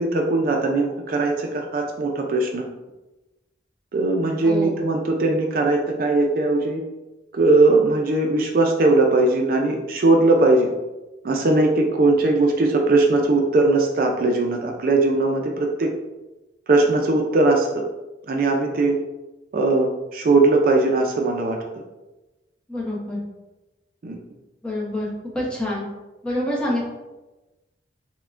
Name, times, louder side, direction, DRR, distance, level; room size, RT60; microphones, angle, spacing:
voice 1, 0.0-2.7 3.9-6.8 7.3-10.7 11.2-15.9 16.7-17.8 18.3-19.0 19.5-21.6 24.0-24.2, right 2 dB, 50° right, 2 dB, 0.3 m, -19 dB
voice 2, 4.4-4.8 22.7-23.2 24.6-25.1 25.3-25.8 26.2-26.8, left 1 dB, 5° left, -5 dB, 0.7 m, -26 dB
5.6 x 2.1 x 2.4 m, 1.1 s
head